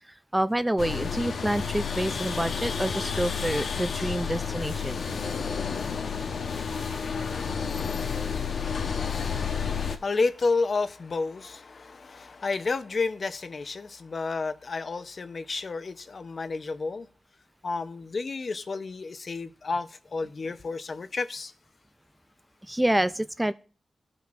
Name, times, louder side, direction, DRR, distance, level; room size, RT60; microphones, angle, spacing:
voice 1, 0.3-5.0 22.6-23.5, right 1 dB, 10° right, 0.3 m, -27 dB
sound 1, 0.8-10.0, left 6 dB, 75° left, 0.9 m, -30 dB
voice 2, 8.3-17.1 17.6-21.5, left 4 dB, 50° left, 0.7 m, -31 dB
17.5 x 5.9 x 2.5 m
wide cardioid pair, 115°, 0 cm